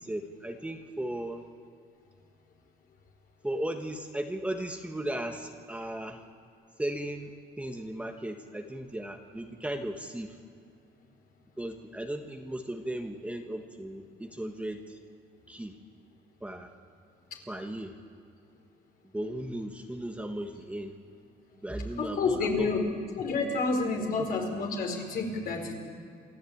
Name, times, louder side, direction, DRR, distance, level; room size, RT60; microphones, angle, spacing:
voice 1, 0.0-1.4 3.4-6.2 6.8-10.3 11.6-15.0 15.5-15.7 16.4-16.7 17.5-17.9 19.1-20.9 21.6-22.7, right 1 dB, 5° right, 4 dB, 1.5 m, -36 dB
voice 2, 22.0-22.8 23.1-25.7, left 4 dB, 60° left, 2 dB, 4.8 m, -29 dB
28.0 x 13.0 x 8.8 m, 2.5 s
cardioid pair, 110°, 17 cm